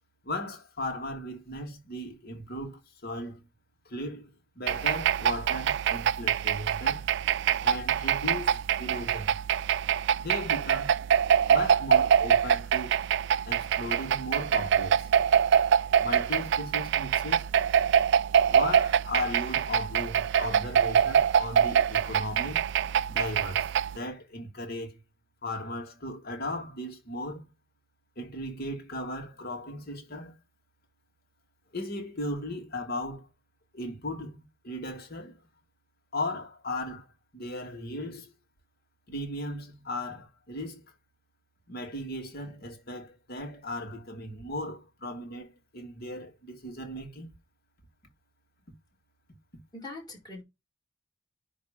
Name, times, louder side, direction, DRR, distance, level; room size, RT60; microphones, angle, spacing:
voice 1, 0.2-3.4 3.8-7.1 7.6-9.3 10.2-11.1 11.5-13.0 13.5-15.1 16.0-17.5 18.5-22.7 23.1-25.0 25.4-27.5 28.2-30.3 31.7-33.3 33.7-35.4 36.1-37.1 37.3-38.3 39.1-40.9 41.7-47.3, left 1 dB, 50° left, 2.6 m, -37 dB
sound 1, 4.7-24.0, right 8 dB, 60° right, 0.3 m, -25 dB
voice 2, 49.7-50.4, left 2 dB, 20° left, 4.6 m, -42 dB
10.0 x 3.4 x 5.2 m
head